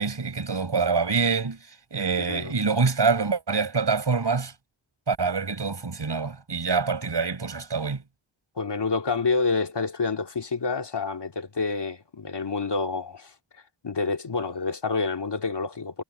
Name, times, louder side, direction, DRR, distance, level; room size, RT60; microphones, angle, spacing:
voice 1, 0.0-1.6 1.9-4.5 5.1-8.0, right 5 dB, 65° right, 5.8 m, -25 dB
voice 2, 8.6-13.3 13.8-16.0, left 4 dB, 65° left, 2.3 m, -28 dB
wide cardioid pair, 85°, 45 cm